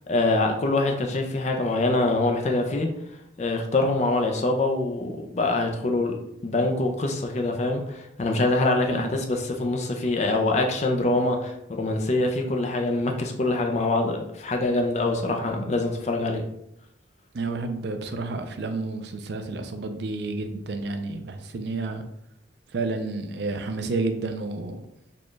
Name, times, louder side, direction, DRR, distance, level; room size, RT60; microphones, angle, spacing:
voice 1, 0.1-2.9 3.4-6.2 6.4-16.4, left 2 dB, 35° left, 3 dB, 0.4 m, -24 dB
voice 2, 17.3-22.0 22.7-24.8, right 3 dB, 60° right, 7 dB, 0.4 m, -30 dB
4.2 x 2.3 x 3.1 m, 0.81 s
head